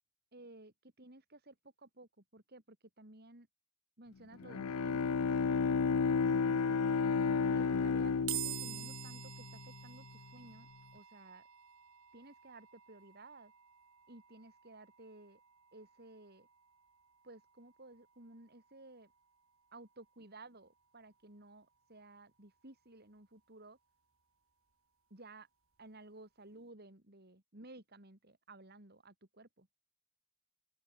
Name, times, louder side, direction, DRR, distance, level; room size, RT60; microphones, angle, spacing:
voice 1, 0.3-3.5 4.0-5.1 6.2-6.8 7.5-11.5 12.1-13.5 14.1-15.4 15.7-16.5 17.2-19.1 19.7-23.8 25.1-25.5 25.8-29.7, right 2 dB, 45° right, 3.2 m, -55 dB
Bowed string instrument, 4.3-10.0, left 5 dB, 85° left, 0.6 m, -32 dB
sound 1, 8.3-21.6, right 15 dB, 70° right, 2.5 m, -50 dB
open air
head